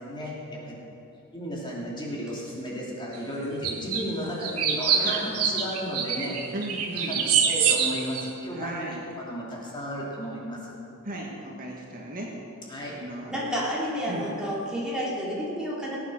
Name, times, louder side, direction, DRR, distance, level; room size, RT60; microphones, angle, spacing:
voice 1, 0.0-0.8 1.3-6.4 7.1-8.8 9.2-10.6 12.7-12.9, equal, 20° left, -5 dB, 3.0 m, -34 dB
sound 1, 3.6-4.0 4.4-8.3, right 7 dB, 85° right, 1.4 m, -25 dB
voice 2, 4.9-5.3 6.5-7.3 8.5-9.0 11.0-12.4 12.7-13.5 14.1-14.3, right 1 dB, 40° right, -2 dB, 1.8 m, -36 dB
voice 3, 13.3-16.0, equal, 5° right, -6 dB, 3.4 m, -30 dB
19.5 x 8.7 x 6.5 m, 2.8 s
head